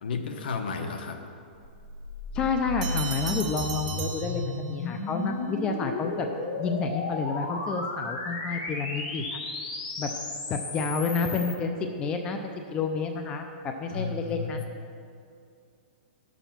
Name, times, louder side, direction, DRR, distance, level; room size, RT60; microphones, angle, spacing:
voice 1, 0.0-1.2 13.9-14.7, left 5 dB, 65° left, 5 dB, 1.1 m, -33 dB
sound 1, 1.6-11.5, left 2 dB, 45° left, 1.8 m, -34 dB
voice 2, 2.3-6.3 6.6-9.4 10.0-10.1 10.5-14.6, left 4 dB, 15° left, 5 dB, 0.5 m, -30 dB
Bell, 2.8-5.0, right 6 dB, 50° right, 1.1 m, -37 dB
11.0 x 7.1 x 5.8 m, 2.4 s
hypercardioid pair, 160°, 5 cm